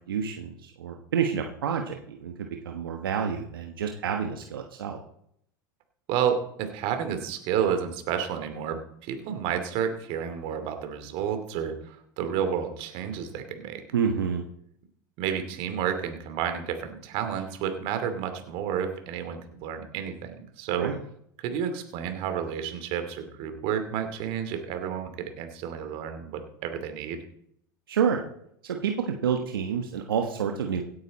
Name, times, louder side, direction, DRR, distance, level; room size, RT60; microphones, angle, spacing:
voice 1, 0.1-5.0 13.9-14.4 20.8-21.0 27.9-28.2 28.6-30.8, right 7 dB, 85° right, 3 dB, 1.3 m, -28 dB
voice 2, 6.1-13.8 15.2-20.9 21.4-27.2, right 8 dB, 55° right, 7 dB, 2.7 m, -31 dB
17.0 x 9.5 x 4.2 m, 0.71 s
hypercardioid pair, 100°, 11 cm